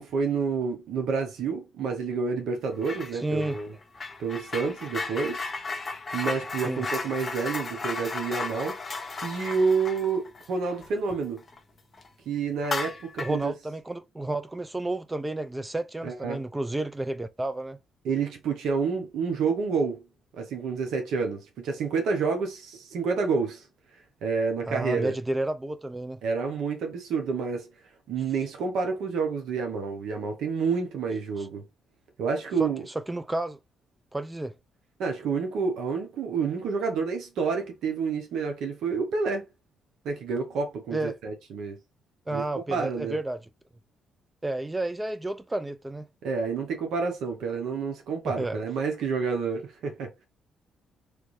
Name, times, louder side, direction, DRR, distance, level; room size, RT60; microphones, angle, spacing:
voice 1, 0.0-3.7 4.2-5.5 6.1-8.8 9.2-11.4 12.3-13.5 16.0-16.4 18.0-20.0 20.4-23.7 24.2-25.1 26.2-27.7 28.1-31.6 32.2-32.9 35.0-39.4 40.0-41.8 42.3-42.4 42.7-43.2 46.2-50.2, right 5 dB, 80° right, 0.9 m, -29 dB
sound 1, 2.8-3.1 3.4-11.6 11.9-12.1 12.6-13.4, left 3 dB, 35° left, 0.8 m, -35 dB
voice 2, 3.1-3.6 6.6-6.8 13.2-17.8 24.7-26.2 31.4-31.5 32.6-33.6 34.1-34.6 40.9-41.2 42.3-43.4 44.4-46.1 48.2-48.6, right 2 dB, 15° right, 0.3 m, -31 dB
3.3 x 2.5 x 3.1 m
cardioid pair, 90°, 0 cm